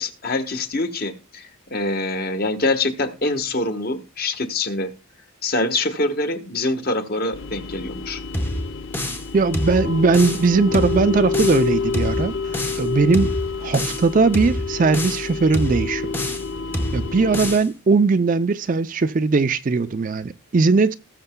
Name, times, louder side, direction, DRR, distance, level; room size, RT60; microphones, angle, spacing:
voice 1, 0.0-4.9 5.4-8.2, left 2 dB, 45° left, 1.2 m, -25 dB
sound 1, 7.3-17.6, left 4 dB, 60° left, 0.6 m, -28 dB
sound 2, 8.3-9.3 9.5-10.5 10.7-11.7 11.9-12.9 13.1-14.1 14.3-15.3 15.5-16.5 16.7-17.7, left 1 dB, 10° left, 0.9 m, -27 dB
voice 2, 9.3-16.1 16.9-20.9, right 4 dB, 35° right, 0.4 m, -19 dB
19.0 x 6.7 x 2.2 m
head